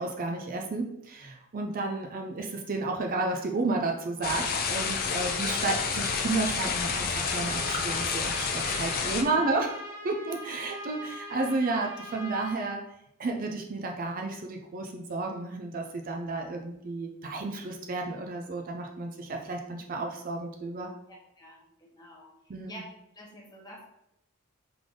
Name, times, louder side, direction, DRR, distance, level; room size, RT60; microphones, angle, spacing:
voice 1, 0.0-12.8 13.2-20.9 22.5-22.8, right 3 dB, 40° right, 2 dB, 0.4 m, -32 dB
sound 1, 4.2-9.2, left 5 dB, 45° left, 0.5 m, -29 dB
Trumpet, 7.3-12.7, equal, 10° right, 1.1 m, -42 dB
voice 2, 9.0-9.4 21.4-22.3 22.7-22.8 23.1-23.8, equal, 20° left, -2 dB, 1.0 m, -48 dB
3.6 x 3.4 x 3.8 m, 0.82 s
head